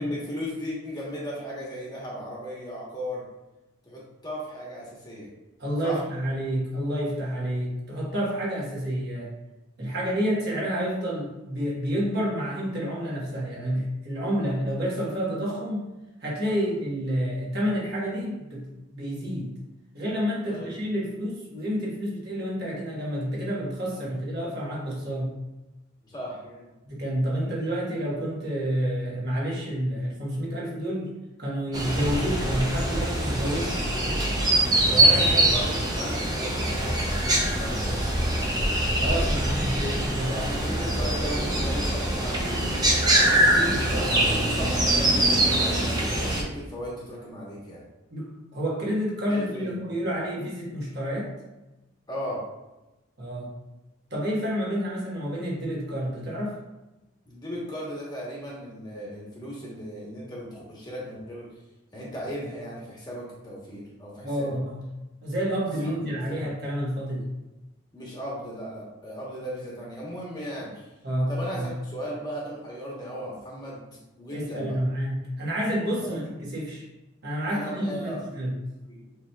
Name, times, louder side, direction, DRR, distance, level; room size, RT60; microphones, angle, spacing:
voice 1, 0.0-3.2 3.8-5.3 5.8-6.0 20.4-20.7 24.4-24.5 26.0-26.7 34.9-38.5 40.2-42.7 43.4-47.8 49.3-49.7 52.1-52.4 57.2-61.5 61.9-64.5 65.8-66.4 67.9-70.9 71.3-73.8 74.2-74.8 76.0-76.2 77.5-78.2 78.9-79.0, equal, 20° left, -5 dB, 1.0 m, -36 dB
voice 2, 5.6-9.3 9.8-15.9 16.2-18.7 18.9-19.5 19.9-25.3 26.8-31.1 31.4-34.1 34.8-35.3 35.5-35.6 39.0-40.3 43.7-43.8 48.1-51.3 53.2-53.5 54.1-56.6 64.2-64.9 65.2-67.3 71.0-71.7 74.3-76.8 77.2-78.6, equal, 50° right, -4 dB, 1.2 m, -29 dB
sound 1, 31.7-46.4, right 1 dB, 20° right, 0.6 m, -23 dB
7.1 x 2.8 x 2.3 m, 1.0 s
head